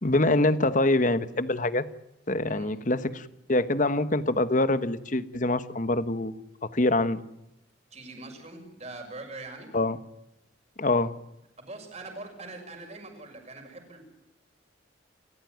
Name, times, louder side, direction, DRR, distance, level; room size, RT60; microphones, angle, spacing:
voice 1, 0.0-1.9 2.3-7.2 9.7-10.0 10.8-11.2, left 2 dB, 40° left, 13 dB, 1.2 m, -25 dB
voice 2, 7.9-9.7 11.6-14.0, right 2 dB, 35° right, 4 dB, 6.4 m, -42 dB
29.5 x 14.5 x 9.4 m, 0.87 s
head